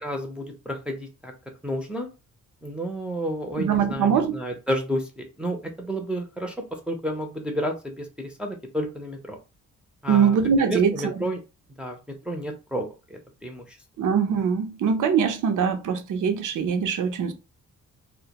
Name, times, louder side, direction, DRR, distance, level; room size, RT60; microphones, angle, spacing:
voice 1, 0.0-1.3 1.6-2.1 2.6-9.4 10.0-10.4 10.6-11.4 11.8-13.8, equal, 5° right, 0.6 m, -31 dB
voice 2, 3.6-4.4 10.1-11.1 14.0-17.3, right 7 dB, 65° right, 0.6 m, -22 dB
2.1 x 2.1 x 2.8 m
cardioid pair, 75°, 32 cm